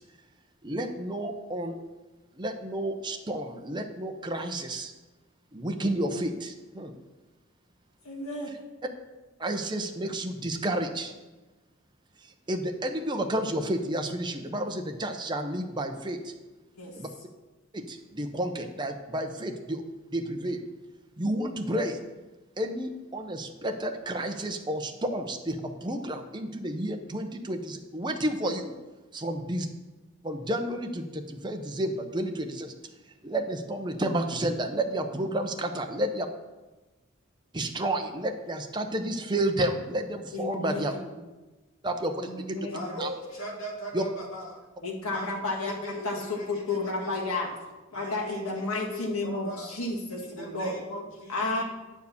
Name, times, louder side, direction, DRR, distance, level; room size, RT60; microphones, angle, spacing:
voice 1, 0.6-1.8 2.3-4.9 5.5-6.9 8.5-8.6 9.4-11.1 12.2-16.3 16.9-17.1 17.7-19.8 20.1-20.6 21.2-22.0 22.6-28.7 29.1-29.7 30.2-36.3 37.5-40.9 41.8-42.7 43.0-43.1 43.9-44.0, right 1 dB, 20° right, 5 dB, 0.7 m, -31 dB
voice 2, 8.0-8.5 16.8-16.9 40.3-41.0 42.5-42.9 44.8-47.5 47.9-50.8 51.3-51.6, left 2 dB, 85° left, -1 dB, 1.9 m, -32 dB
voice 3, 42.7-44.6 45.0-47.3 47.9-49.7 50.2-51.6, left 1 dB, 65° left, -3 dB, 2.5 m, -39 dB
9.4 x 4.5 x 7.0 m, 1.2 s
head